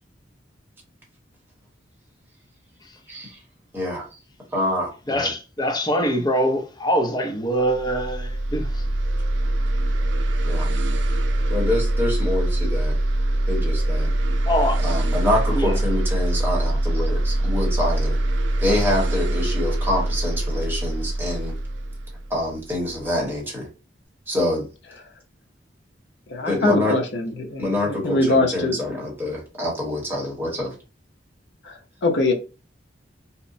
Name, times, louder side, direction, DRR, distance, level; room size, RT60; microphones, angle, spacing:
voice 1, 3.7-4.1 4.5-5.3 10.4-10.7 11.5-13.0 13.5-14.1 14.8-18.2 18.6-21.5 22.3-23.7 24.3-24.7 26.5-26.9 27.6-30.7, left 1 dB, 10° right, 1.0 m, -26 dB
voice 2, 5.1-8.8 14.5-14.8 15.5-15.8, equal, 20° left, 0.5 m, -23 dB
sound 1, 7.6-23.1, right 1 dB, 75° right, 0.4 m, -23 dB
voice 3, 26.3-28.8 31.6-32.3, left 2 dB, 65° left, 0.6 m, -23 dB
2.8 x 2.0 x 2.5 m
head